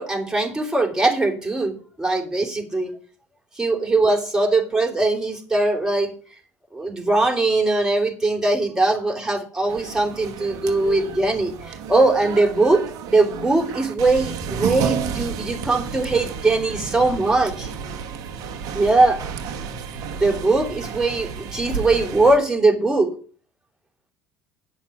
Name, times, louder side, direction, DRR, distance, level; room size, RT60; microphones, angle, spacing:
voice 1, 0.0-2.9 3.6-6.1 6.7-17.7 18.7-19.2 20.1-23.1, right 2 dB, 5° right, 1 dB, 3.2 m, -21 dB
sound 1, 9.7-22.4, right 6 dB, 55° right, 1.2 m, -31 dB
9.3 x 5.7 x 6.2 m, 0.41 s
figure-of-eight pair, 65°, 8 cm